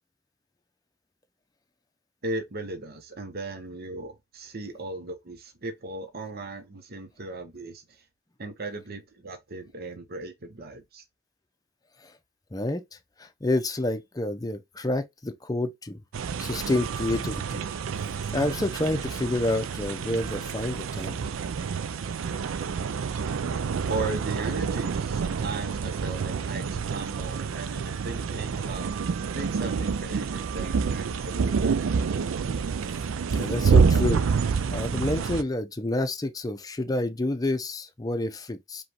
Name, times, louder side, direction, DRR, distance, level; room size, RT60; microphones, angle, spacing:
voice 1, 2.2-7.8 8.4-11.0 23.9-28.9 29.3-32.1, right 2 dB, 50° right, 0.9 m, -37 dB
voice 2, 12.5-12.8 13.2-16.0 16.4-17.6 18.3-21.2 33.3-34.2 34.5-38.8, left 1 dB, 20° left, 0.6 m, -29 dB
sound 1, 16.1-35.4, right 5 dB, 75° right, 0.4 m, -28 dB
5.0 x 3.2 x 2.9 m
head